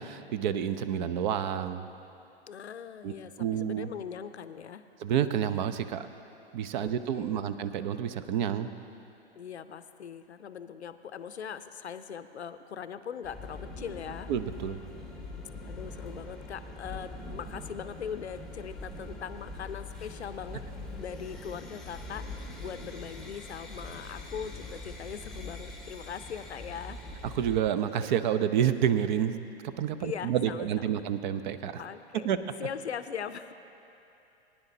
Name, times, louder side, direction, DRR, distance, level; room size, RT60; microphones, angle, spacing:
voice 1, 0.0-1.9 3.0-3.1 3.4-3.9 5.0-6.1 6.5-8.7 14.3-14.8 27.2-29.4 29.8-31.8 32.2-32.4, right 9 dB, 45° right, 12 dB, 0.6 m, -29 dB
voice 2, 2.5-4.8 6.8-7.6 9.4-14.3 15.6-20.6 21.0-27.0 30.0-31.0 31.8-32.3 32.6-33.5, left 7 dB, 85° left, 11 dB, 0.5 m, -40 dB
sound 1, 13.2-27.6, left 2 dB, ahead, 0.9 m, -43 dB
20.0 x 10.0 x 2.7 m, 2.8 s
figure-of-eight pair, 100°, 32 cm